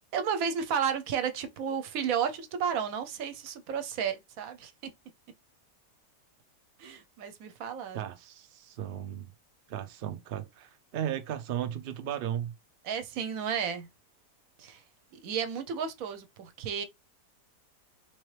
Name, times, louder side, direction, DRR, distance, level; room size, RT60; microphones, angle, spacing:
voice 1, 0.1-4.7 6.8-8.1 12.8-13.9 14.6-14.8 15.1-16.8, right 7 dB, 65° right, 1.0 m, -32 dB
voice 2, 7.9-9.3 9.7-12.5, right 10 dB, 90° right, 0.4 m, -35 dB
3.9 x 3.0 x 3.1 m
omnidirectional pair, 1.7 m